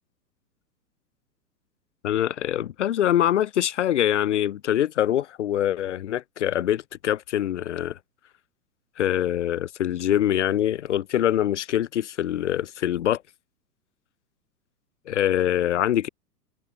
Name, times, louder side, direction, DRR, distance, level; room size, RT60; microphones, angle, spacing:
voice 1, 2.0-8.0 9.0-13.2 15.1-16.1, left 11 dB, 50° left, 0.4 m, -24 dB
figure-of-eight pair, 110°, 49 cm